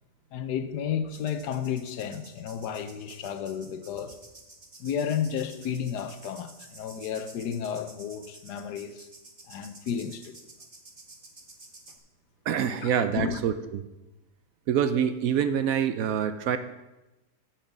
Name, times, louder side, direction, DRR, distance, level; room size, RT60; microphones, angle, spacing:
voice 1, 0.3-4.2 4.8-9.1 9.5-10.4 12.8-13.4, left 8 dB, 80° left, 1.3 m, -32 dB
sound 1, 1.1-12.0, right 2 dB, 25° right, 1.0 m, -51 dB
voice 2, 12.5-13.5 14.7-16.6, right 8 dB, 70° right, 0.9 m, -25 dB
8.9 x 5.9 x 7.1 m
omnidirectional pair, 1.7 m